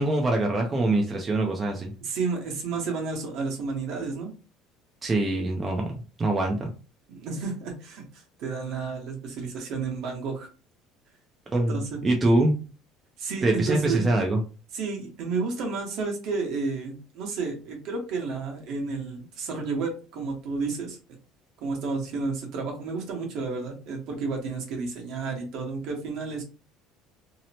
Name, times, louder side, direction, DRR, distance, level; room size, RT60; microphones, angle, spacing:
voice 1, 0.0-1.9 5.0-5.9 6.2-6.7 11.5-12.6 13.4-14.4, right 2 dB, 15° right, 1 dB, 0.4 m, -24 dB
voice 2, 2.0-4.3 7.1-10.5 11.7-12.0 13.2-14.1 14.7-21.0 21.6-26.4, right 4 dB, 55° right, 1 dB, 1.0 m, -31 dB
2.8 x 2.0 x 2.7 m, 0.34 s
cardioid pair, 165°, 0 cm